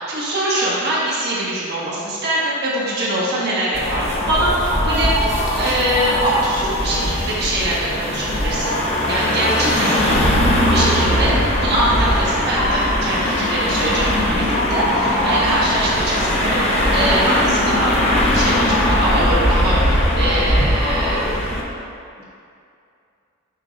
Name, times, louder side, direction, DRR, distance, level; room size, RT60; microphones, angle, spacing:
voice 1, 0.0-10.2 10.7-11.4 11.6-18.0 18.3-21.3 22.2-22.3, right 1 dB, 50° right, -7 dB, 1.4 m, -23 dB
sound 1, 3.7-21.6, left 1 dB, 30° left, 0.8 m, -19 dB
7.4 x 2.6 x 5.2 m, 2.5 s
head